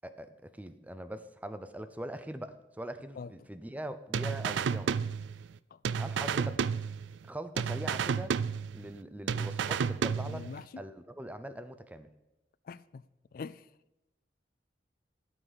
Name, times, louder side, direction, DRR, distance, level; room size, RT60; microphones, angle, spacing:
voice 1, 0.0-5.0 6.0-6.6 7.3-8.4 8.7-10.5 10.8-12.1, right 1 dB, 10° right, 0.6 m, -42 dB
sound 1, 4.1-5.6 5.8-7.3 7.6-9.0 9.3-10.6, right 6 dB, 90° right, 0.4 m, -31 dB
voice 2, 10.2-10.7 12.6-13.0 13.3-13.7, left 5 dB, 50° left, 0.3 m, -43 dB
13.5 x 6.2 x 5.1 m
head